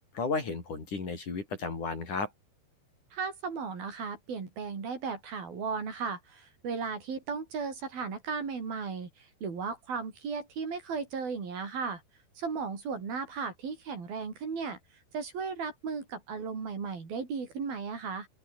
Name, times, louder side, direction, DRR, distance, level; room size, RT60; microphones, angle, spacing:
voice 1, 0.1-2.3, left 4 dB, 45° left, 6.4 m, -33 dB
voice 2, 3.1-12.0 12.4-14.8 15.1-18.3, right 5 dB, 60° right, 6.6 m, -35 dB
open air
omnidirectional pair, 4.9 m